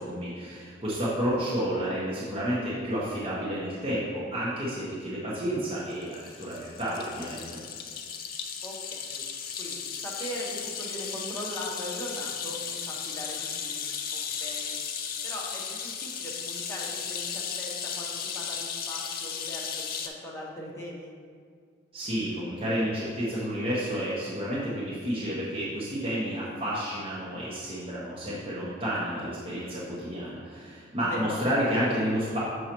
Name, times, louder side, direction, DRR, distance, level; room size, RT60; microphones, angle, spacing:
voice 1, 0.0-7.4 21.9-32.4, equal, 30° right, -9 dB, 1.0 m, -30 dB
sound 1, 5.9-20.1, left 7 dB, 50° left, 0.4 m, -35 dB
voice 2, 8.6-9.2 9.6-13.8 14.1-14.8 15.2-21.1 31.0-31.4, equal, 15° left, -4 dB, 0.9 m, -40 dB
6.3 x 5.5 x 3.0 m, 2.1 s
head